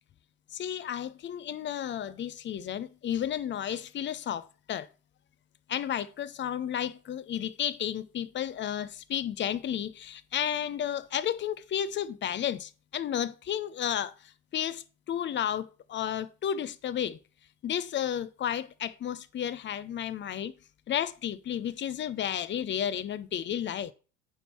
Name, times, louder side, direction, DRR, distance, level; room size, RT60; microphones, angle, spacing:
voice 1, 0.5-4.9 5.7-17.2 17.6-20.5 20.9-23.9, left 9 dB, 25° left, 0.6 m, -32 dB
9.1 x 3.7 x 4.4 m
hypercardioid pair, 75°, 43 cm